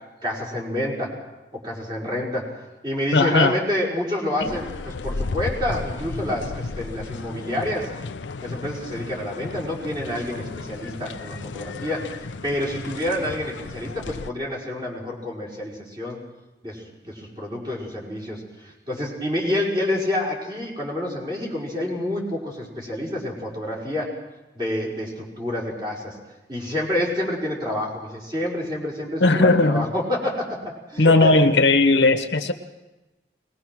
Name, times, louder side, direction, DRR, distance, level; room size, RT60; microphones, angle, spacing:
voice 1, 0.2-1.1 1.5-2.5 2.8-7.9 8.4-16.2 16.6-24.1 24.5-26.2 26.5-30.6 30.9-31.5, left 1 dB, 25° right, -4 dB, 5.3 m, -28 dB
voice 2, 3.1-3.6 4.4-4.5 29.2-29.9 31.0-32.5, left 2 dB, 70° left, 7 dB, 1.2 m, -17 dB
sound 1, 4.4-14.3, left 3 dB, 85° left, 0.6 m, -34 dB
22.5 x 20.0 x 6.1 m, 1.1 s
head